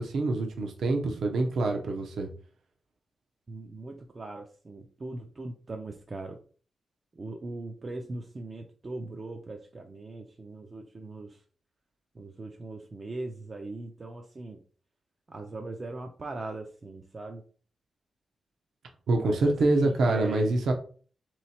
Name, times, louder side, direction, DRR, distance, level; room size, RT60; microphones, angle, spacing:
voice 1, 0.0-2.3 19.1-20.7, right 2 dB, 70° right, 3 dB, 0.8 m, -26 dB
voice 2, 3.5-6.4 7.2-11.4 12.2-14.6 15.3-17.4 19.2-20.5, right 2 dB, 25° right, 4 dB, 0.4 m, -40 dB
3.9 x 3.0 x 4.2 m, 0.42 s
wide cardioid pair, 170°, 0 cm